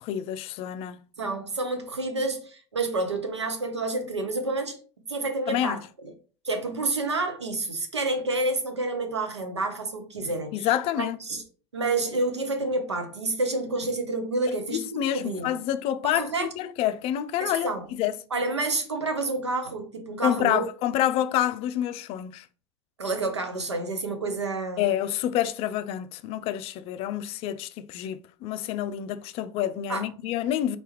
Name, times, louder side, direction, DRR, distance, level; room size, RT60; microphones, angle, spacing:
voice 1, 0.0-1.0 5.5-5.8 10.5-11.2 14.7-18.2 20.2-22.5 24.8-30.8, left 11 dB, 45° left, 0.4 m, -28 dB
voice 2, 1.2-4.8 5.1-6.1 6.4-10.7 11.0-11.4 11.7-15.5 16.0-16.7 17.4-17.9 18.3-20.6 23.0-24.8 29.9-30.1, right 2 dB, 85° right, 0.8 m, -29 dB
4.1 x 3.4 x 3.0 m
figure-of-eight pair, 75°, 14 cm